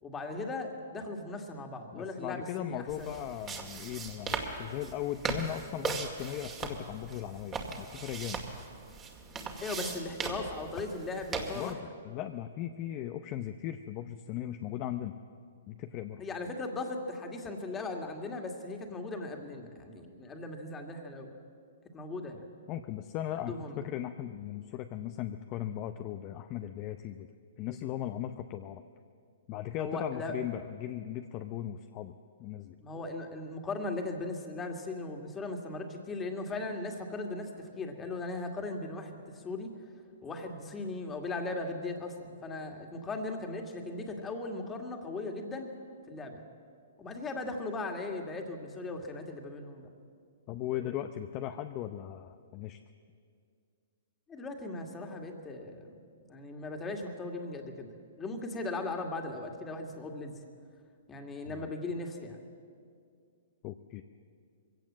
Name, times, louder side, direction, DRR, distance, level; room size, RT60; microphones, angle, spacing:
voice 1, 0.0-3.2 9.6-11.9 16.2-21.4 21.9-22.5 23.4-23.8 29.8-30.3 32.8-39.7 40.2-45.7 46.1-46.4 47.0-49.9 54.3-57.9 58.2-60.4 61.1-62.4, left 2 dB, 15° left, 3 dB, 2.2 m, -38 dB
voice 2, 1.9-8.4 11.5-15.1 15.7-16.2 22.7-27.3 27.6-28.8 29.5-32.1 32.4-33.0 50.5-52.8 61.4-61.7 63.6-64.0, left 12 dB, 35° left, 7 dB, 0.7 m, -38 dB
sound 1, 2.9-11.7, right 5 dB, 20° right, 2.1 m, -39 dB
22.0 x 17.0 x 7.6 m, 2.3 s
hypercardioid pair, 140°, 0 cm